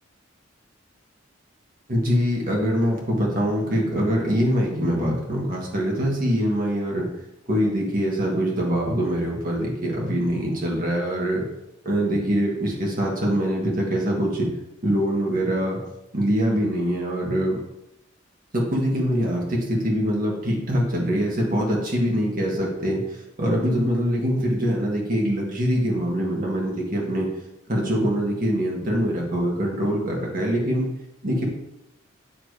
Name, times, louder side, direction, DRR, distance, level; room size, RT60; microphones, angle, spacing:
voice 1, 1.9-7.1 7.5-11.4 11.8-14.5 14.8-15.8 16.1-17.6 18.5-27.3 27.7-30.9 31.2-31.5, equal, 45° right, -2 dB, 1.6 m, -23 dB
8.8 x 3.0 x 4.8 m, 0.91 s
head